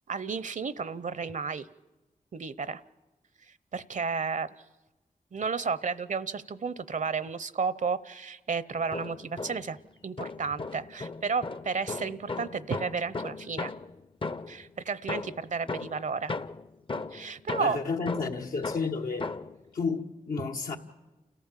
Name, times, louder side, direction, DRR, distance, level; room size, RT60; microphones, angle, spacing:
voice 1, 0.1-1.7 2.3-2.8 3.7-4.5 5.3-9.8 10.0-13.7 14.5-16.3 17.1-17.8 20.4-20.5, right 5 dB, 60° right, 0.7 m, -32 dB
sound 1, 8.7-9.8 10.2-14.7 15.1-19.6, left 3 dB, 35° left, 0.6 m, -37 dB
voice 2, 17.6-19.3 19.7-20.8, left 4 dB, 90° left, 1.5 m, -31 dB
29.0 x 14.5 x 7.4 m
cardioid pair, 45°, 14 cm